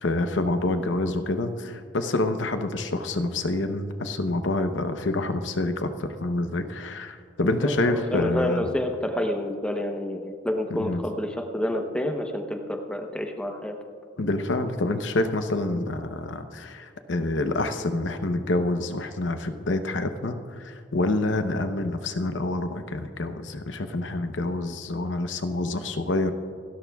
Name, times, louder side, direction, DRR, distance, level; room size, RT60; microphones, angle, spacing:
voice 1, 0.0-8.6 10.7-11.0 14.2-26.3, left 2 dB, 75° left, 7 dB, 0.8 m, -27 dB
voice 2, 7.4-13.8, left 1 dB, 5° left, 3 dB, 0.9 m, -29 dB
27.0 x 13.5 x 2.3 m, 2.2 s
head